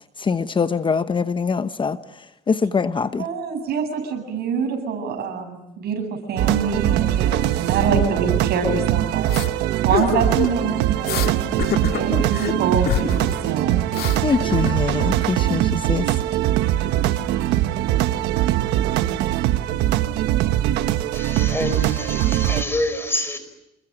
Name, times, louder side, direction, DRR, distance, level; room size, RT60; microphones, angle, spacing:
voice 1, 0.2-2.0 2.5-3.2 7.9-8.0 12.1-12.2 14.2-16.1, left 5 dB, 30° left, 1.1 m, -23 dB
voice 2, 3.2-9.6 9.8-11.5 11.9-13.7, right 5 dB, 70° right, 7.7 m, -25 dB
sound 1, 6.4-22.6, right 13 dB, 90° right, 1.3 m, -22 dB
sound 2, 9.3-9.5 9.9-10.6 11.0-11.3 11.6-12.5 12.9-13.4 13.6-15.0, left 10 dB, 65° left, 2.2 m, -26 dB
voice 3, 21.1-23.4, left 1 dB, 15° left, 5.0 m, -26 dB
28.0 x 21.5 x 9.0 m
cardioid pair, 110°, 17 cm